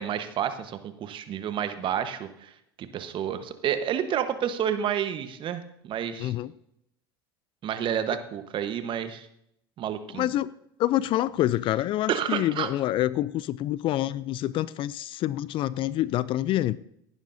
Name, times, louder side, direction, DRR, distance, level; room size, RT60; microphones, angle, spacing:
voice 1, 0.0-2.5 2.8-6.3 7.6-9.3 9.8-10.3 12.1-12.7, right 9 dB, 40° right, 10 dB, 1.2 m, -30 dB
voice 2, 6.2-6.5 10.1-10.5 10.8-16.8, left 14 dB, 45° left, 19 dB, 0.4 m, -27 dB
17.0 x 11.0 x 2.7 m, 0.76 s
hypercardioid pair, 85°, 13 cm